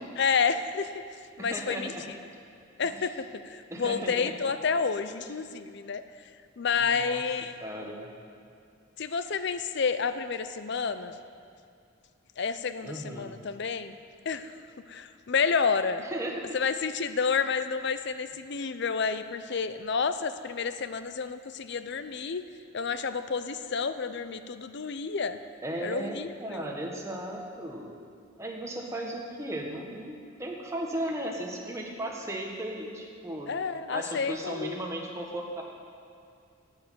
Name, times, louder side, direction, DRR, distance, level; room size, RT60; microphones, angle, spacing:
voice 1, 0.2-1.0 1.4-1.9 2.8-6.0 6.6-7.5 9.0-11.2 12.4-14.0 14.3-14.6 14.9-16.0 16.5-22.4 22.7-25.4 25.8-26.7 33.5-34.8, left 5 dB, 55° left, 11 dB, 0.5 m, -30 dB
voice 2, 1.4-2.1 2.8-3.1 3.7-4.3 6.7-7.2 7.6-8.1 12.8-13.4 16.0-16.6 25.6-27.9 28.4-33.5 33.9-35.6, right 1 dB, 15° right, -1 dB, 1.3 m, -36 dB
9.6 x 8.3 x 9.3 m, 2.4 s
head